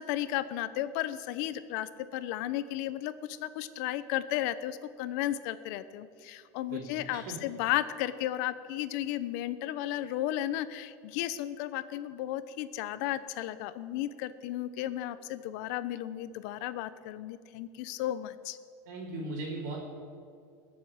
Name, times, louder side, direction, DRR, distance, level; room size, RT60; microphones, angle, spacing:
voice 1, 0.0-18.6, left 13 dB, 70° left, 13 dB, 0.8 m, -34 dB
voice 2, 6.7-7.4 18.9-19.8, right 2 dB, 85° right, -7 dB, 3.6 m, -38 dB
21.0 x 7.3 x 8.8 m, 2.3 s
supercardioid pair, 150°, 9 cm